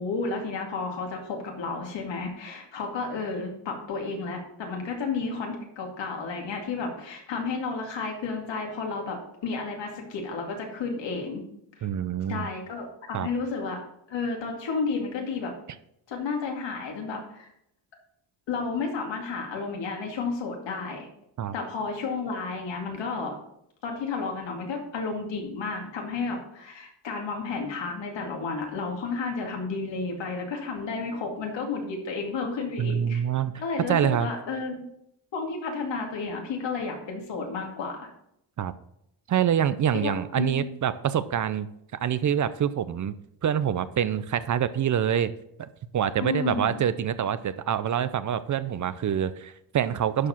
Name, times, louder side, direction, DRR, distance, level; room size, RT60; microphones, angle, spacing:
voice 1, 0.0-11.4 12.3-13.8 14.1-15.5 16.1-17.5 18.5-21.1 21.5-23.4 23.8-33.2 33.6-34.9 35.3-38.1 39.9-40.7 46.2-46.8, left 4 dB, 85° left, 1 dB, 2.4 m, -32 dB
voice 2, 11.8-12.5 13.1-13.3 21.4-21.5 32.8-33.5 33.9-34.3 38.6-38.7 39.3-41.7 42.0-43.1 43.4-45.3 45.6-50.3, right 9 dB, 45° right, 14 dB, 0.5 m, -26 dB
11.0 x 4.7 x 5.7 m, 0.76 s
wide cardioid pair, 160°, 43 cm